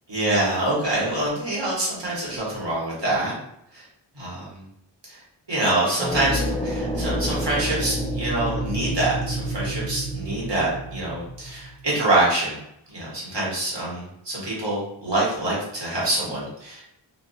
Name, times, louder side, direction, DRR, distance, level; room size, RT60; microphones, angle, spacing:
voice 1, 0.1-3.3 3.7-3.9 4.1-4.6 5.1-5.2 5.5-12.6 12.9-16.8, right 2 dB, 60° right, -6 dB, 1.4 m, -25 dB
sound 1, 6.0-11.8, right 1 dB, 10° left, 0.4 m, -28 dB
2.8 x 2.4 x 2.7 m, 0.77 s
wide cardioid pair, 45°, 48 cm